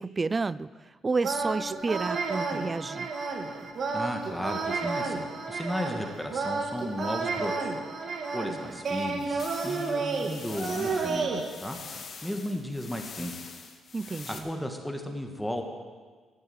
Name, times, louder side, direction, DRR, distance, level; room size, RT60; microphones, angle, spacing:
voice 1, 0.0-3.1 13.9-14.5, right 4 dB, 30° right, 19 dB, 0.3 m, -31 dB
sound 1, 1.2-11.4, right 4 dB, 55° right, 1.8 m, -31 dB
voice 2, 3.9-7.7 8.3-11.3 11.6-11.8 12.2-13.3 14.3-15.6, equal, 5° left, 3 dB, 1.7 m, -34 dB
sound 2, 9.4-14.4, left 5 dB, 55° left, 1.7 m, -44 dB
13.5 x 7.9 x 8.1 m, 1.5 s
cardioid pair, 90°, 0 cm